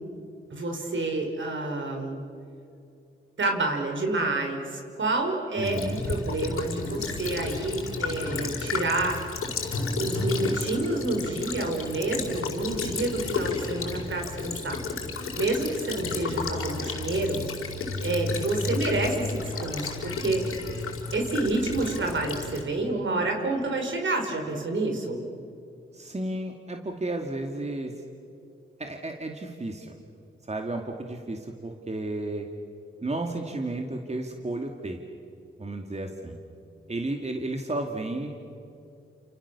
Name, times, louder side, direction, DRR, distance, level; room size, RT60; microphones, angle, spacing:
voice 1, 0.5-2.2 3.4-9.2 9.9-14.8 15.4-17.4 18.0-20.4 21.1-25.2, right 2 dB, 65° right, 3 dB, 5.5 m, -28 dB
Child speech kid speaking / Bird vocalization bird call bird song / Stream, 5.6-22.6, left 4 dB, 85° left, 4.8 m, -32 dB
voice 2, 5.6-6.0 25.9-27.9 28.8-29.9 30.5-32.5 33.0-35.0 35.6-36.4 36.9-38.3, right 2 dB, 30° right, 3 dB, 2.6 m, -32 dB
29.5 x 28.0 x 7.1 m, 2.5 s
cardioid pair, 65°, 21 cm